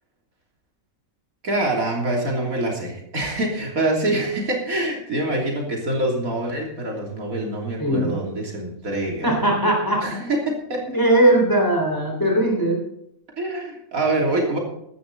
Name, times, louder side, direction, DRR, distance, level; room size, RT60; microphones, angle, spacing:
voice 1, 1.4-9.4 10.0-10.4 10.7-10.8 13.4-14.6, right 2 dB, 85° right, -1 dB, 3.6 m, -25 dB
voice 2, 7.8-8.2 9.2-10.1 10.9-12.8, right 1 dB, 15° left, 1 dB, 3.7 m, -19 dB
14.5 x 12.0 x 4.0 m, 0.75 s
omnidirectional pair, 1.4 m